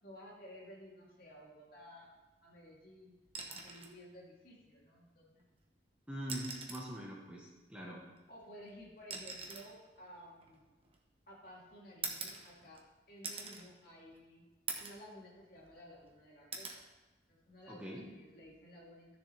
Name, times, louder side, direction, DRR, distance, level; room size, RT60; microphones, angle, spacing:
voice 1, 0.0-2.1 2.4-3.1 3.5-5.5 8.3-10.7 11.3-12.8 13.1-14.4 14.8-16.8 17.3-19.2, equal, 55° left, -5 dB, 2.8 m, -54 dB
sound 1, 3.3-4.0 5.4-5.5 6.2-7.0 8.1-11.2 12.0-12.9 13.2-13.7 14.1-14.2 14.7-15.1 15.5-16.1 16.5-16.8 18.3-18.5, right 4 dB, 30° right, 1.0 m, -44 dB
voice 2, 6.1-8.0 17.7-18.1, equal, 5° right, -3 dB, 1.1 m, -43 dB
13.5 x 6.7 x 3.3 m, 1.2 s
head